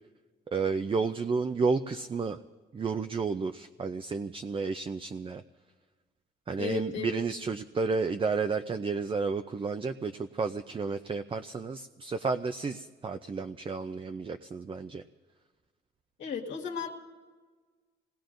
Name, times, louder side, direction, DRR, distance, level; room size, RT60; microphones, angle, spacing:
voice 1, 0.5-2.4 2.7-5.4 6.5-15.0, right 4 dB, 25° right, 9 dB, 0.5 m, -31 dB
voice 2, 6.6-7.2 16.2-16.9, left 7 dB, 75° left, -1 dB, 1.9 m, -34 dB
26.5 x 19.5 x 2.6 m, 1.4 s
cardioid pair, 90°, 20 cm